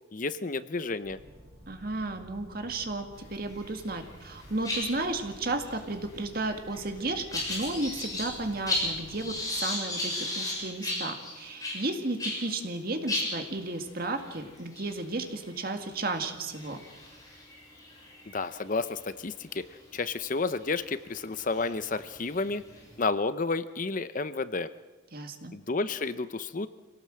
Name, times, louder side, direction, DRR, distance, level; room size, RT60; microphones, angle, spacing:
voice 1, 0.1-1.2 18.3-19.7 19.9-22.6 23.0-24.7 25.5-26.7, left 3 dB, 40° left, 13 dB, 0.7 m, -31 dB
sound 1, 1.0-9.4, equal, 70° right, 5.0 m, -52 dB
voice 2, 1.7-16.8 25.1-25.6, right 2 dB, 50° right, 5 dB, 2.1 m, -33 dB
sound 2, 3.5-4.0 4.3-12.5 12.8-12.9 13.1-18.9 19.5-19.7 20.6-20.7 21.3-23.0, left 2 dB, 20° left, 6.7 m, -36 dB
25.5 x 18.0 x 7.6 m, 1.2 s
head